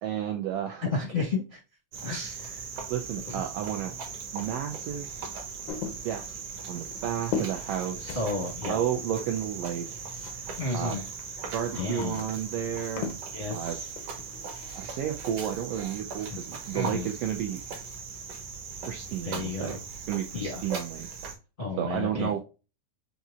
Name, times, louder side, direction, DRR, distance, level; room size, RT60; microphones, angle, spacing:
voice 1, 0.0-0.8 2.9-3.9 4.3-5.1 6.0-6.4 6.7-8.2 8.7-10.0 10.7-11.0 11.5-13.1 13.5-13.8 14.7-17.6 18.9-19.8 20.1-21.1 21.8-22.4, right 9 dB, 80° right, 4 dB, 1.4 m, -32 dB
voice 2, 0.9-1.6 2.0-2.6 3.2-3.4 8.1-8.8 10.6-11.0 11.7-12.3 13.3-13.9 16.2-16.4 16.7-17.1 19.2-19.8 20.3-20.6 21.6-22.4, left 3 dB, 45° left, -3 dB, 0.6 m, -32 dB
Cricket, 1.9-21.3, right 5 dB, 60° right, 2.2 m, -39 dB
sound 1, 5.7-10.6 10.9-14.9, left 6 dB, 90° left, 1.1 m, -39 dB
5.9 x 2.7 x 2.4 m, 0.31 s
omnidirectional pair, 3.3 m